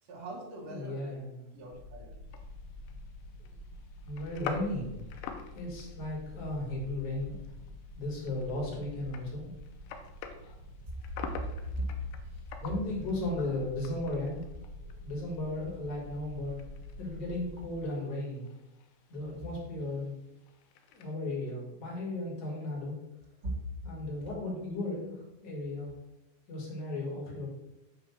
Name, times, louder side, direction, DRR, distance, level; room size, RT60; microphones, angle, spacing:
voice 1, 0.0-1.2 1.5-2.2 9.9-10.0 10.9-11.0 11.7-12.8 13.4-13.6 23.4-23.5, equal, 50° right, -3 dB, 2.1 m, -39 dB
voice 2, 0.7-1.4 4.0-4.9 5.5-7.5 8.0-9.5 12.6-14.4 15.0-16.6 17.0-18.5 19.1-20.1 20.9-23.0 23.8-25.9 26.5-27.5, left 2 dB, 45° left, -3 dB, 2.5 m, -35 dB
sound 1, 1.7-17.8, left 1 dB, 80° right, 0.6 m, -47 dB
sound 2, 2.3-21.2, left 7 dB, 90° left, 3.0 m, -48 dB
9.0 x 3.0 x 6.2 m, 0.91 s
omnidirectional pair, 5.1 m